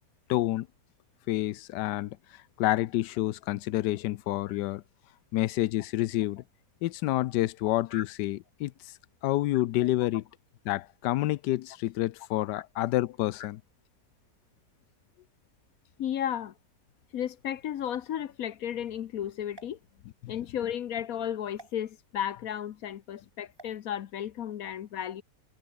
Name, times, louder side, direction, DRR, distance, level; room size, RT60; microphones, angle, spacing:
voice 1, 0.3-0.7 1.3-4.8 5.3-6.4 6.8-8.7 9.2-10.2 10.7-13.6 20.2-20.3, left 16 dB, 90° left, 1.2 m, -28 dB
voice 2, 16.0-16.5 17.1-19.8 20.3-25.2, left 10 dB, 65° left, 1.2 m, -34 dB
sound 1, 19.5-20.5 21.6-21.7 23.5-23.8, right 2 dB, 15° right, 1.9 m, -53 dB
omnidirectional pair, 1.8 m